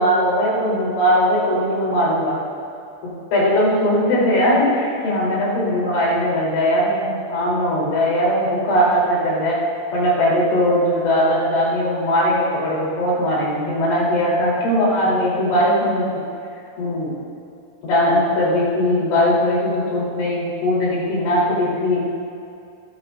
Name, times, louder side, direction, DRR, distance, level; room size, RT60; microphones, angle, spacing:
voice 1, 0.0-2.4 3.0-9.6 9.9-16.1 16.8-17.1 17.8-22.0, equal, 80° left, -7 dB, 5.9 m, -19 dB
21.5 x 11.5 x 2.5 m, 2.5 s
omnidirectional pair, 5.4 m